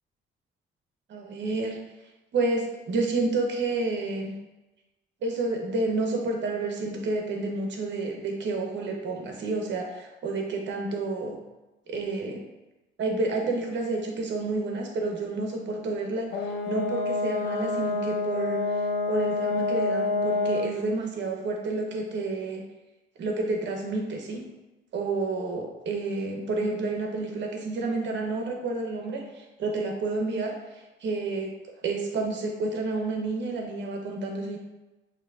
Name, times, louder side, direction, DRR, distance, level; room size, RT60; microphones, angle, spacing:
voice 1, 1.1-1.8 2.3-4.4 5.2-11.4 11.9-12.4 13.0-22.6 23.2-24.4 24.9-31.5 31.8-34.6, right 3 dB, 65° right, 1 dB, 1.0 m, -30 dB
Brass instrument, 16.3-20.8, left 3 dB, 80° left, 0.6 m, -28 dB
6.5 x 2.9 x 2.4 m, 1.0 s
cardioid pair, 90°, 20 cm